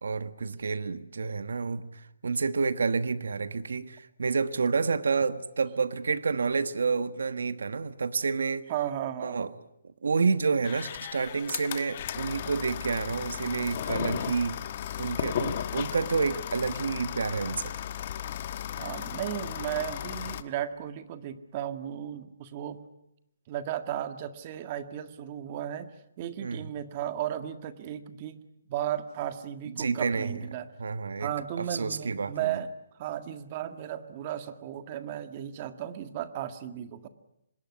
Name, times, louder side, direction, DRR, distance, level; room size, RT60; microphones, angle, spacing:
voice 1, 0.0-8.7 9.2-9.5 10.0-14.6 15.0-17.7 26.4-26.7 29.8-30.3 30.8-32.6, right 4 dB, 80° right, 13 dB, 1.4 m, -29 dB
voice 2, 8.7-9.5 18.8-22.8 23.5-25.9 26.2-28.4 28.7-30.7 31.2-32.7 33.0-37.1, right 11 dB, 30° right, 10 dB, 1.8 m, -35 dB
sound 1, 10.6-20.4, left 10 dB, 35° left, 1.4 m, -35 dB
25.5 x 21.0 x 9.7 m, 0.82 s
hypercardioid pair, 165°, 0 cm